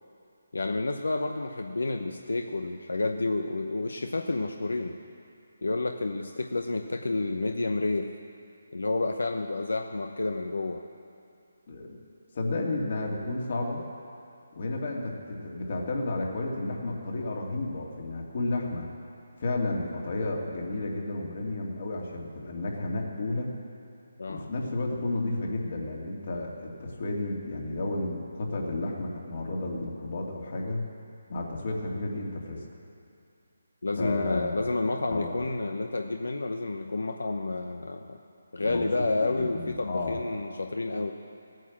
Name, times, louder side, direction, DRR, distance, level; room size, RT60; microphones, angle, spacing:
voice 1, 0.5-5.0 5.6-8.1 8.7-10.8 24.2-24.5 33.8-38.2 38.5-41.1, left 2 dB, 90° left, 5 dB, 0.8 m, -30 dB
voice 2, 11.7-12.0 12.3-13.8 14.6-18.9 19.4-23.5 24.3-30.8 31.3-32.6 34.0-34.8 35.0-35.4 38.6-38.9 39.2-40.3, left 2 dB, 50° left, 0 dB, 2.4 m, -32 dB
16.0 x 9.1 x 7.3 m, 2.6 s
hypercardioid pair, 165°, 0 cm